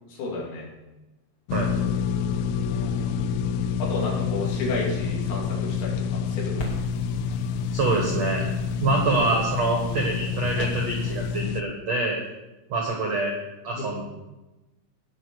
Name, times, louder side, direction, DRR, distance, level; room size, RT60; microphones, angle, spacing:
voice 1, 0.1-0.7 2.7-3.3 3.8-6.7 13.7-14.0, left 3 dB, 65° left, -4 dB, 5.1 m, -32 dB
sound 1, 1.5-11.6, left 6 dB, 85° left, 3.0 m, -28 dB
sound 2, 6.6-11.4, equal, 45° left, 1.7 m, -42 dB
voice 2, 7.7-8.4 8.8-12.2 12.7-13.3 13.6-14.0, right 3 dB, 80° right, 0 dB, 1.4 m, -25 dB
17.5 x 6.1 x 6.5 m, 1.1 s
omnidirectional pair, 5.8 m